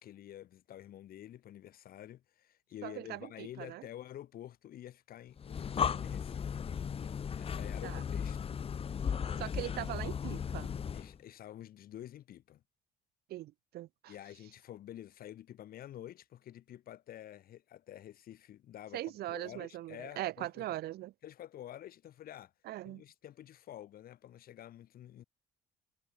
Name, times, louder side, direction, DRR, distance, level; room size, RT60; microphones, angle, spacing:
voice 1, 0.0-6.6 7.4-8.4 10.9-12.6 14.1-20.7 21.2-22.5 22.8-25.2, left 12 dB, 60° left, 2.3 m, -49 dB
voice 2, 2.8-3.8 7.8-8.0 9.4-10.7 13.3-14.1 18.9-21.1 22.7-23.0, right 15 dB, 70° right, 0.8 m, -40 dB
Breathing, 5.4-11.2, left 7 dB, 35° left, 1.0 m, -36 dB
cardioid pair, 110°, 17 cm